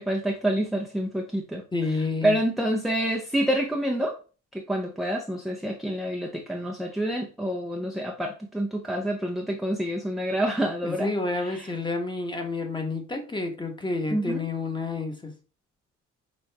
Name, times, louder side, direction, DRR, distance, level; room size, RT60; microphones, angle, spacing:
voice 1, 0.0-1.6 2.2-4.2 4.5-11.1 14.1-14.5, right 1 dB, ahead, 1 dB, 0.6 m, -27 dB
voice 2, 1.7-2.4 10.8-15.3, left 3 dB, 15° left, 4 dB, 1.2 m, -29 dB
6.4 x 2.5 x 3.4 m, 0.36 s
cardioid pair, 90°, 30 cm